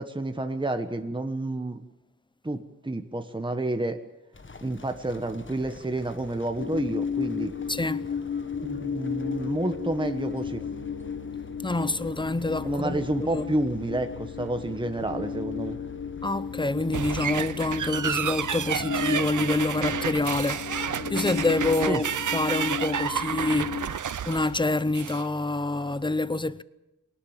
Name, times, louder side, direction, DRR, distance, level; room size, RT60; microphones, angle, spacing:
voice 1, 0.0-1.8 2.4-4.0 4.6-7.5 8.6-10.6 12.6-15.8 21.9-22.0, right 2 dB, 15° right, 1.3 m, -29 dB
sound 1, 4.3-21.5, left 3 dB, 40° left, 1.5 m, -48 dB
sound 2, 6.6-23.9, left 6 dB, 65° left, 1.6 m, -34 dB
voice 2, 7.7-8.1 11.6-13.0 13.3-13.4 16.2-22.1 22.3-24.0 24.3-26.6, left 2 dB, 15° left, 0.8 m, -27 dB
sound 3, 16.9-25.3, right 8 dB, 80° right, 0.7 m, -30 dB
23.5 x 19.0 x 7.4 m
wide cardioid pair, 95°, 30 cm